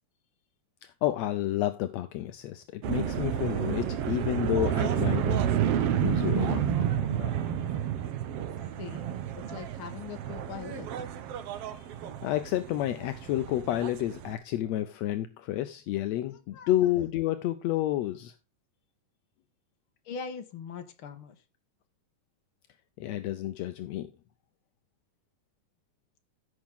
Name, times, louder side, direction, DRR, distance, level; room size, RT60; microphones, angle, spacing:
voice 1, 0.8-5.5 6.0-7.4 12.2-18.3 23.0-24.1, left 14 dB, 75° left, 1.6 m, -30 dB
sound 1, 2.8-14.3, right 9 dB, 65° right, 1.6 m, -30 dB
voice 2, 8.8-11.1 16.3-16.7 20.1-21.4, left 6 dB, 50° left, 1.9 m, -42 dB
15.0 x 6.4 x 3.6 m
omnidirectional pair, 3.8 m